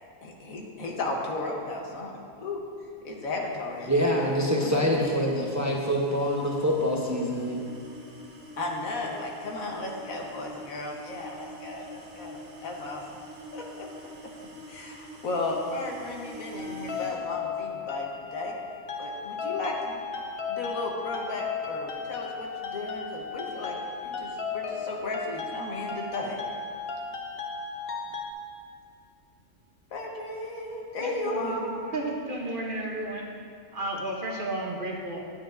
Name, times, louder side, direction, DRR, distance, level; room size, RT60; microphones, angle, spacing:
voice 1, 0.0-2.6 3.0-4.2 4.6-4.8 8.6-13.0 13.5-13.9 14.7-18.5 19.0-20.0 20.5-23.7 24.0-26.4 29.9-32.0, left 2 dB, 90° left, 0 dB, 1.5 m, -35 dB
sound 1, 3.3-17.2, equal, 70° right, 1.7 m, -46 dB
voice 2, 3.9-7.6, equal, 15° right, -3 dB, 0.7 m, -25 dB
sound 2, 16.6-28.3, left 5 dB, 55° left, 0.8 m, -35 dB
voice 3, 31.0-31.6 31.9-33.3 33.7-35.2, right 1 dB, 45° right, -1 dB, 1.0 m, -32 dB
11.5 x 8.6 x 2.6 m, 2.3 s
omnidirectional pair, 1.4 m